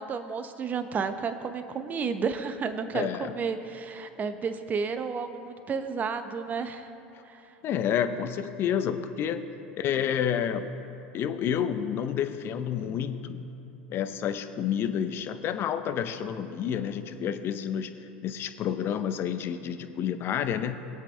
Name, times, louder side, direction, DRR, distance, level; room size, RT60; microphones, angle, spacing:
voice 1, 0.0-6.9 7.2-7.5, right 5 dB, 30° right, 8 dB, 1.0 m, -32 dB
voice 2, 2.9-3.3 7.6-9.5 9.8-10.8 11.1-13.4 13.9-20.8, left 8 dB, 45° left, 10 dB, 0.8 m, -29 dB
21.0 x 7.9 x 3.4 m, 2.8 s
hypercardioid pair, 85°, 5 cm